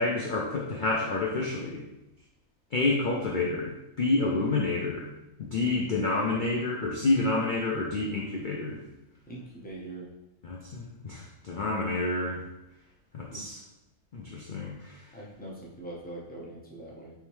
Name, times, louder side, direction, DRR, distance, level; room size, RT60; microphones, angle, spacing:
voice 1, 0.0-1.8 2.7-3.7 4.0-5.0 5.4-8.8 10.4-12.4 13.1-13.6 14.1-15.0, left 3 dB, 80° left, -3 dB, 0.4 m, -28 dB
voice 2, 9.3-10.1 13.3-13.4 15.1-17.1, right 2 dB, 10° left, -5 dB, 0.5 m, -42 dB
3.5 x 3.3 x 3.0 m, 0.94 s
omnidirectional pair, 1.5 m